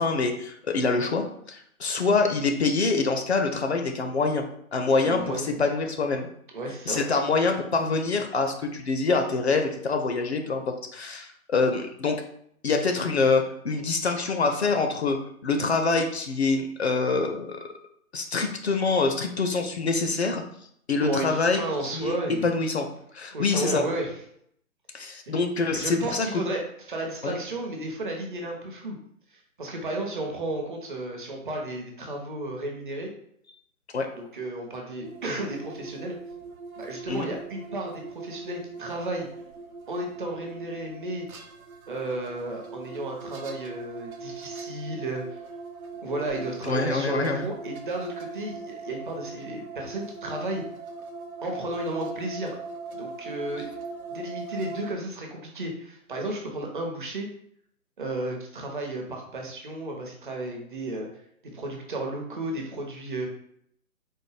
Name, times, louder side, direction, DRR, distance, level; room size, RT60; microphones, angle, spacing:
voice 1, 0.0-4.4 4.7-6.3 6.9-12.2 12.6-15.2 15.4-17.7 18.1-20.4 20.9-21.6 21.9-22.2 22.4-22.9 23.1-23.8 24.9-26.4 27.2-27.3 33.9-34.1 37.1-37.3 46.6-47.4, left 4 dB, 50° left, 5 dB, 0.5 m, -25 dB
voice 2, 5.0-5.6 6.5-7.0 21.0-22.5 23.3-24.1 25.3-25.4 25.7-26.6 26.9-29.0 29.3-33.1 34.1-36.2 36.8-39.3 39.9-41.3 41.9-45.2 46.0-50.6 51.4-52.6 52.9-53.7 54.1-57.3 58.0-61.1 61.5-63.3, right 2 dB, 35° right, 1 dB, 0.6 m, -33 dB
sound 1, 35.0-54.9, right 4 dB, 75° right, 0.7 m, -40 dB
4.2 x 2.0 x 3.2 m, 0.69 s
figure-of-eight pair, 140°, 43 cm